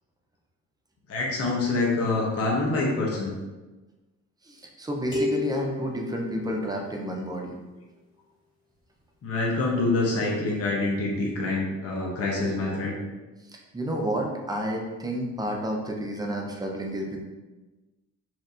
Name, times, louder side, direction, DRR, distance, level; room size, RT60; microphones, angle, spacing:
voice 1, 1.1-3.3 9.2-13.0, left 2 dB, 50° left, -3 dB, 0.9 m, -26 dB
voice 2, 4.4-7.6 13.5-17.2, right 1 dB, 15° right, 0 dB, 0.6 m, -30 dB
sound 1, 5.1-7.0, left 4 dB, 15° left, 1.4 m, -31 dB
4.3 x 2.6 x 2.5 m, 1.2 s
cardioid pair, 90°, 30 cm